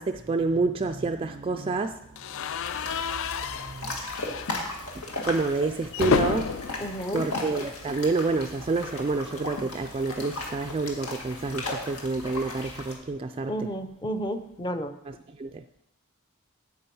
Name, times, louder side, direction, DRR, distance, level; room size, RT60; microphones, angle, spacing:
voice 1, 0.0-2.0 3.5-4.0 5.2-6.5 7.1-13.7 15.1-15.6, right 3 dB, 25° right, 6 dB, 0.3 m, -28 dB
sound 1, 2.2-8.2 8.5-8.7 8.9-9.0 10.3-12.6, left 6 dB, 65° left, 0.4 m, -33 dB
sound 2, 2.6-12.9, left 2 dB, 85° left, 1.9 m, -36 dB
voice 2, 6.8-7.3 13.5-14.9, equal, 20° left, 9 dB, 0.7 m, -31 dB
8.6 x 8.3 x 5.4 m, 0.82 s
head